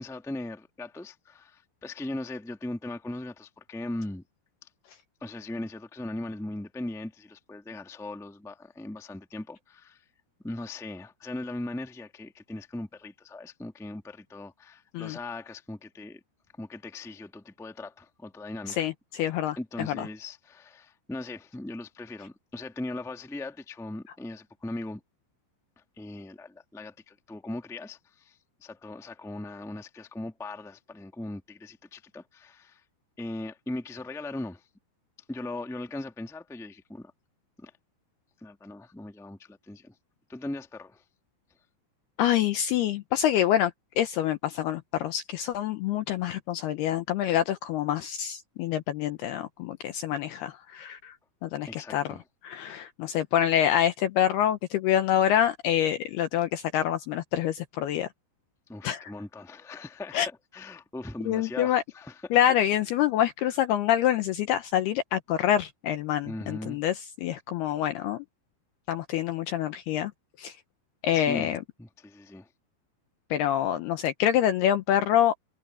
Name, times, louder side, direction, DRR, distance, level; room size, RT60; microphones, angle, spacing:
voice 1, 0.0-4.2 5.2-10.0 10.4-16.2 16.6-18.9 19.5-25.0 26.0-32.8 33.2-34.6 35.3-37.1 37.6-37.7 38.4-39.9 40.3-41.0 51.7-52.2 58.7-62.4 66.2-66.8 71.1-72.5, left 2 dB, ahead, 0.9 m, -39 dB
voice 2, 18.7-20.1 42.2-43.7 44.0-51.1 51.4-52.2 52.4-58.1 58.8-59.1 60.1-60.3 61.3-61.8 62.3-68.3 68.9-70.1 70.4-70.5 71.0-71.6 73.3-75.3, left 11 dB, 80° left, 2.4 m, -26 dB
omnidirectional pair, 5.5 m